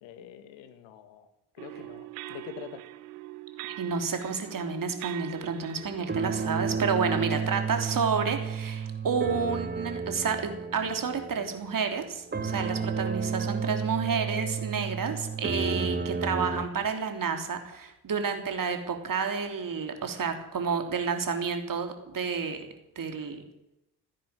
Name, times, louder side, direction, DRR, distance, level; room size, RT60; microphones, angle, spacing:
voice 1, 0.0-2.8 7.1-7.4, left 9 dB, 70° left, 9 dB, 2.1 m, -45 dB
sound 1, 1.6-6.9, right 18 dB, 80° right, 1.0 m, -43 dB
voice 2, 3.6-22.6 22.9-23.4, right 5 dB, 45° right, 5 dB, 3.4 m, -30 dB
sound 2, 5.8-12.0 12.3-16.7, right 5 dB, 20° right, 1.6 m, -32 dB
15.5 x 10.0 x 9.0 m, 0.87 s
hypercardioid pair, 50°, 47 cm